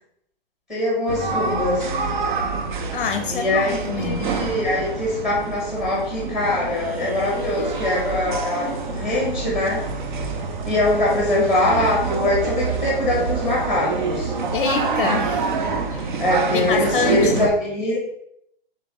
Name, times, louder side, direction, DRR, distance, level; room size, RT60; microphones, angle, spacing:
voice 1, 0.7-1.9 3.3-9.9 10.6-14.3 16.2-18.2, left 2 dB, ahead, 1.1 m, -23 dB
sound 1, 1.1-17.5, right 4 dB, 55° right, 0.5 m, -26 dB
voice 2, 2.9-4.4 14.5-15.5 15.9-16.2 16.5-17.5, left 6 dB, 60° left, 0.5 m, -26 dB
sound 2, 6.5-16.8, right 1 dB, 35° right, 1.0 m, -39 dB
3.6 x 3.5 x 3.6 m
hypercardioid pair, 160°, 30 cm